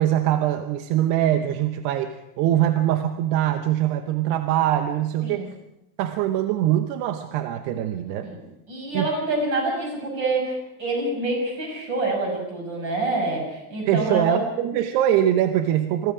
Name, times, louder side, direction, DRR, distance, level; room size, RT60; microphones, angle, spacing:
voice 1, 0.0-5.5 6.0-8.3 8.9-9.1 13.9-16.1, right 11 dB, 85° right, 7 dB, 3.0 m, -23 dB
voice 2, 8.2-14.5, right 2 dB, 25° right, 1 dB, 7.0 m, -26 dB
27.5 x 21.5 x 4.9 m, 0.94 s
omnidirectional pair, 4.6 m